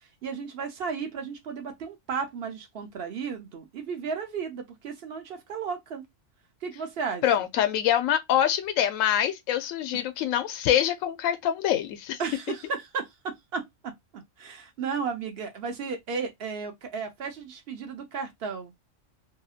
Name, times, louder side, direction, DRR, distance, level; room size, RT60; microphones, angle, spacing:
voice 1, 0.2-6.0 6.6-7.5 9.9-10.0 12.2-18.7, right 5 dB, 55° right, 0.9 m, -34 dB
voice 2, 7.2-12.2, left 10 dB, 80° left, 0.9 m, -25 dB
2.8 x 2.6 x 2.4 m
omnidirectional pair, 1.4 m